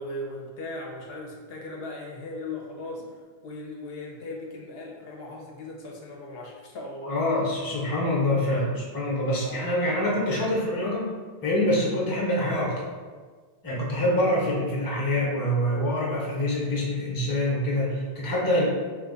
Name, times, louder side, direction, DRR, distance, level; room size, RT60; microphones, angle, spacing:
voice 1, 0.0-7.2 9.4-10.0, left 2 dB, 70° left, -1 dB, 0.8 m, -38 dB
voice 2, 7.1-11.1 11.4-12.8 13.6-18.7, left 1 dB, 25° left, -4 dB, 0.6 m, -25 dB
2.9 x 2.2 x 3.8 m, 1.5 s
omnidirectional pair, 1.1 m